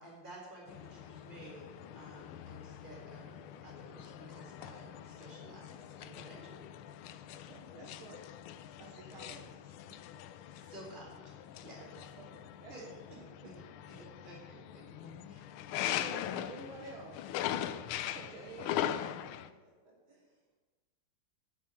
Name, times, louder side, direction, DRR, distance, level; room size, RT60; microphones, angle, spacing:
voice 1, 0.0-6.6 10.6-11.2 11.5-11.8 12.7-12.8 13.2-15.9, right 1 dB, 20° right, -4 dB, 4.0 m, -53 dB
sound 1, 0.7-19.5, left 11 dB, 85° left, 1.5 m, -41 dB
voice 2, 7.5-8.3 8.8-9.6 11.8-13.0 14.2-14.3 16.0-17.2 18.1-18.9, right 3 dB, 75° right, -1 dB, 2.2 m, -50 dB
voice 3, 19.2-20.6, right 2 dB, 50° right, -3 dB, 3.5 m, -67 dB
8.6 x 7.5 x 8.8 m, 1.3 s
omnidirectional pair, 2.3 m